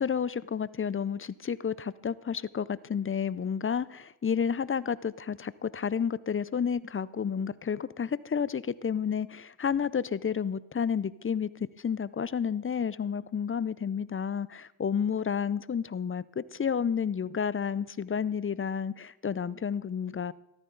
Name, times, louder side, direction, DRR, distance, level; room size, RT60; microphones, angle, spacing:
voice 1, 0.0-11.5 11.8-20.3, left 7 dB, 30° left, 18 dB, 0.4 m, -31 dB
13.5 x 13.5 x 3.8 m, 0.91 s
cardioid pair, 55°, 47 cm